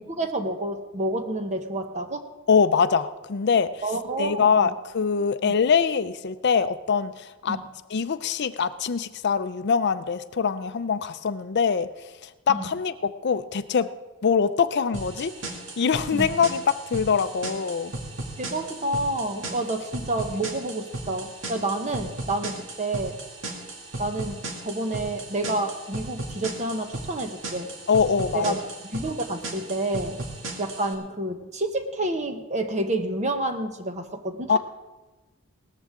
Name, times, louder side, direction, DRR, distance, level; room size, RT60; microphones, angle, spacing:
voice 1, 0.0-2.3 3.8-4.7 5.4-5.5 7.5-7.6 12.5-12.7 16.1-16.3 18.4-23.2 24.0-27.7 28.3-28.7 28.9-30.2 30.6-34.6, right 2 dB, 30° right, 6 dB, 1.1 m, -29 dB
voice 2, 2.5-3.7 4.2-7.6 7.9-11.9 12.2-13.9 14.2-15.4 15.8-17.9 27.9-28.5 34.5-34.6, left 6 dB, 50° left, 12 dB, 0.5 m, -23 dB
sound 1, 14.9-30.9, right 2 dB, 60° right, 2.3 m, -36 dB
18.0 x 14.0 x 3.7 m, 1.1 s
head